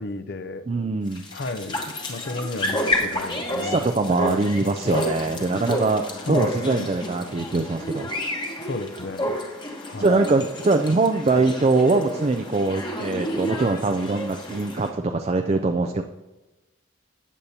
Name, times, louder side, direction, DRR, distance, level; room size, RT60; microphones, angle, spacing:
voice 1, 0.0-0.7 1.3-1.8 2.1-3.8 6.3-6.9 8.6-9.3 9.9-10.1, left 2 dB, 50° left, 11 dB, 0.6 m, -33 dB
voice 2, 0.7-1.3 3.6-8.4 10.0-16.0, right 3 dB, 30° right, 6 dB, 0.4 m, -23 dB
sound 1, 1.1-14.9, left 1 dB, 20° left, 1.1 m, -30 dB
14.5 x 8.6 x 2.8 m, 1.1 s
head